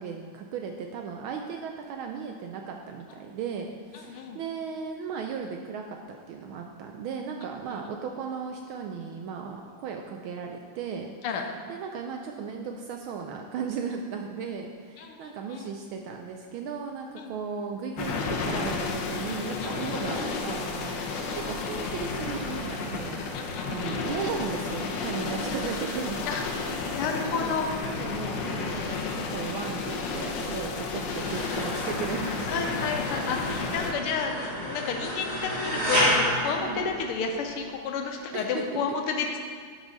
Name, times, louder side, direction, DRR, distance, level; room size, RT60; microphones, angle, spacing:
voice 1, 0.0-11.1 11.7-26.3 26.6-27.6 27.8-32.6 36.6-36.8 38.3-39.0, right 6 dB, 75° right, 3 dB, 1.3 m, -36 dB
voice 2, 3.9-4.4 7.8-7.9 11.2-11.4 15.0-15.7 17.2-17.3 19.6-19.9 23.3-24.0 26.3-27.6 32.5-39.4, left 5 dB, 85° left, 3 dB, 1.6 m, -31 dB
sound 1, 18.0-33.9, left 4 dB, 65° left, 1.3 m, -32 dB
sound 2, 31.2-37.5, equal, 20° right, 1.8 m, -30 dB
11.5 x 4.8 x 3.9 m, 2.1 s
omnidirectional pair, 2.4 m